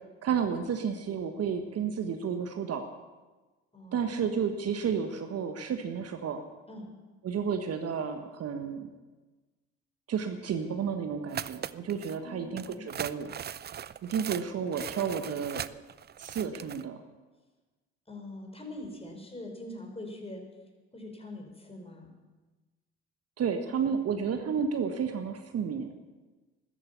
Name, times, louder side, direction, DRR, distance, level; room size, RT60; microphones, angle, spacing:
voice 1, 0.2-2.9 3.9-6.4 7.2-8.9 10.1-13.4 14.0-15.6 16.2-17.0 23.4-25.9, right 7 dB, 50° right, 7 dB, 1.4 m, -31 dB
voice 2, 3.7-4.1 6.7-6.9 12.2-12.8 14.2-14.3 14.5-14.6 18.1-20.4 20.9-22.1, left 1 dB, 20° left, 2 dB, 4.9 m, -43 dB
sound 1, 11.3-12.2 12.6-16.8, right 9 dB, 30° right, 0.5 m, -39 dB
14.5 x 13.5 x 7.0 m, 1.2 s
figure-of-eight pair, 50°, 33 cm